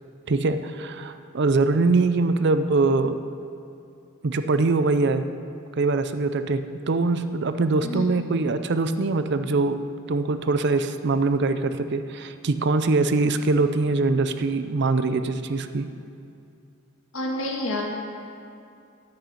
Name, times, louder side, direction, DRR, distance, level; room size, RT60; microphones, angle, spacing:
voice 1, 0.3-3.2 4.2-5.2 5.8-6.6 6.9-9.8 10.1-15.8, right 3 dB, 55° right, 10 dB, 0.5 m, -23 dB
voice 2, 17.1-17.8, left 1 dB, 70° left, -1 dB, 1.8 m, -28 dB
9.9 x 6.6 x 8.4 m, 2.5 s
head